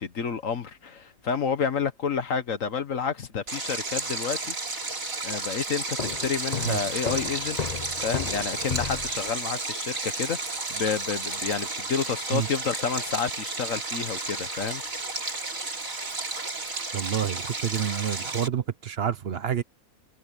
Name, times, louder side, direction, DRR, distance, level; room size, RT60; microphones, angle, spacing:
voice 1, 0.0-4.5 5.2-7.6 8.0-14.8, left 6 dB, 65° left, 1.6 m, -30 dB
Stream, 3.5-18.5, right 3 dB, 70° right, 3.9 m, -32 dB
Walk footsteps, 6.0-9.3, left 6 dB, 35° left, 0.8 m, -34 dB
voice 2, 16.9-19.6, right 9 dB, 50° right, 0.9 m, -28 dB
omnidirectional pair, 1.5 m